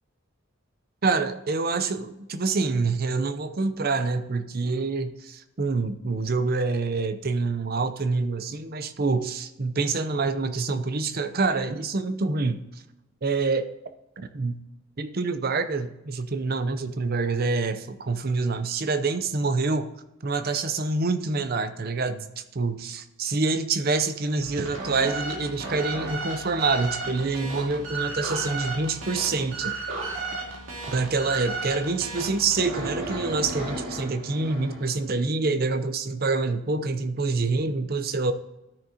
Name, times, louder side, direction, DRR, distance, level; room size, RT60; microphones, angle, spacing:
voice 1, 1.0-12.6 13.2-13.7 14.2-14.6 15.0-19.9 20.2-29.7 30.9-38.3, right 3 dB, 45° right, 0.6 m, -26 dB
sound 1, 24.4-35.0, right 3 dB, 70° right, 2.1 m, -34 dB
13.0 x 6.3 x 2.8 m
head